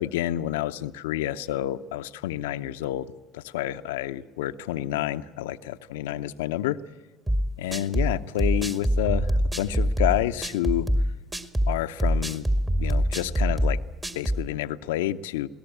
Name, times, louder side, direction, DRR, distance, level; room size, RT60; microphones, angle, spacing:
voice 1, 0.0-6.8 7.6-9.3 9.6-10.9 11.7-12.5 12.8-13.8 14.1-15.5, left 13 dB, 80° left, 12 dB, 0.7 m, -29 dB
sound 1, 7.3-14.5, equal, 15° right, 2.0 m, -25 dB
21.5 x 18.0 x 8.7 m, 1.3 s
hypercardioid pair, 65°, 0 cm